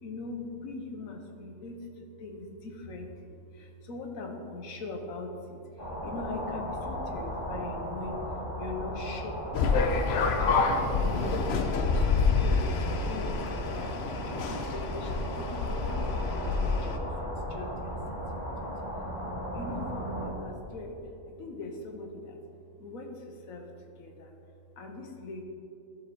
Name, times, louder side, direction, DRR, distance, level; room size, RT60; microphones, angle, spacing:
voice 1, 0.0-1.8 2.2-5.6 6.0-8.2 8.6-10.5 11.0-11.4 11.7-17.0 17.5-18.2 18.6-18.7 19.5-21.0 21.3-22.4 22.8-23.7 24.0-24.3 24.8-25.4, left 2 dB, 85° left, 3 dB, 1.4 m, -41 dB
sound 1, 5.8-20.3, equal, 30° left, 2.1 m, -37 dB
sound 2, 9.5-17.0, left 4 dB, 60° left, 0.8 m, -28 dB
13.0 x 4.5 x 4.2 m, 2.7 s
omnidirectional pair, 1.4 m